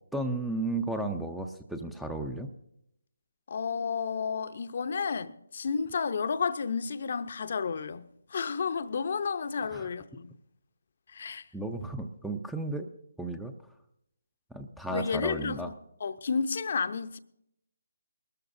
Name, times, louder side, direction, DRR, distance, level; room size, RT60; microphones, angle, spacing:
voice 1, 0.1-2.5 9.7-9.9 11.5-12.9 13.2-13.5 14.5-15.7, right 2 dB, ahead, 0.6 m, -34 dB
voice 2, 3.5-10.4 11.1-11.5 14.9-15.7 16.0-17.2, left 5 dB, 50° left, 0.7 m, -31 dB
21.0 x 13.5 x 2.6 m
figure-of-eight pair, 155°, 0 cm